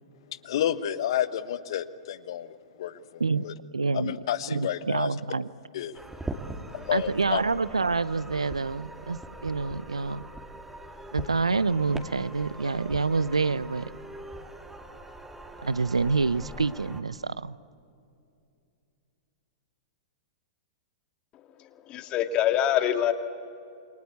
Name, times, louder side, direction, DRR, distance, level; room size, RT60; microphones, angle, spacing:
voice 1, 0.4-3.5 3.9-5.1 5.7-5.9 6.7-7.4, left 11 dB, 60° left, 1.1 m, -30 dB
voice 2, 3.7-4.1 4.5-5.5 6.9-10.2 11.1-13.9 15.6-17.6, right 4 dB, 90° right, 0.7 m, -27 dB
sound 1, 5.9-17.0, right 1 dB, 10° right, 2.4 m, -42 dB
voice 3, 21.9-23.1, left 11 dB, 35° left, 2.0 m, -24 dB
28.5 x 23.0 x 8.4 m
hypercardioid pair, 110°, 3 cm